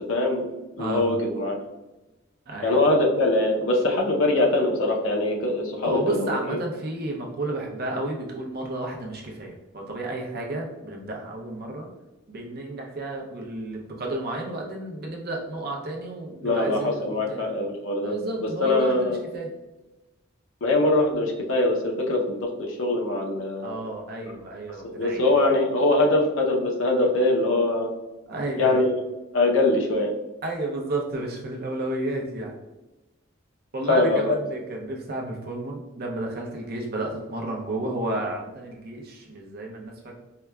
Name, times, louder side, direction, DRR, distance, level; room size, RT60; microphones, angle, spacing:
voice 1, 0.1-0.4 0.8-1.5 2.6-6.6 16.4-18.1 18.6-19.2 20.6-23.8 25.0-27.9 28.6-28.9 29.3-30.1 33.9-34.2, left 2 dB, 75° left, 1 dB, 0.6 m, -22 dB
voice 2, 0.8-1.1 2.5-2.7 5.8-11.9 12.3-17.4 18.0-19.5 23.6-25.2 28.3-28.8 30.4-32.6 33.7-40.1, right 2 dB, 50° right, 0 dB, 0.6 m, -32 dB
4.6 x 2.2 x 2.2 m, 1.0 s
head